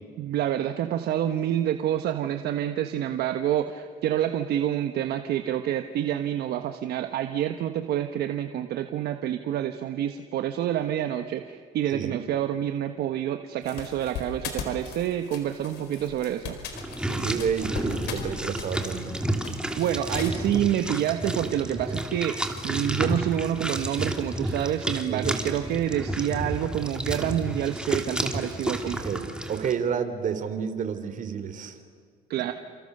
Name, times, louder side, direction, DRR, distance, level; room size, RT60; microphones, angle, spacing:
voice 1, 0.2-16.6 19.4-29.0 32.3-32.5, right 11 dB, 70° right, 7 dB, 1.2 m, -28 dB
sound 1, 13.6-20.3, left 7 dB, 80° left, 4.6 m, -39 dB
sound 2, 16.7-29.7, right 1 dB, 5° right, 2.8 m, -31 dB
voice 2, 17.0-19.1 25.1-25.4 28.8-31.8, right 7 dB, 50° right, 9 dB, 3.2 m, -30 dB
29.0 x 28.0 x 6.7 m, 2.1 s
cardioid pair, 110°, 17 cm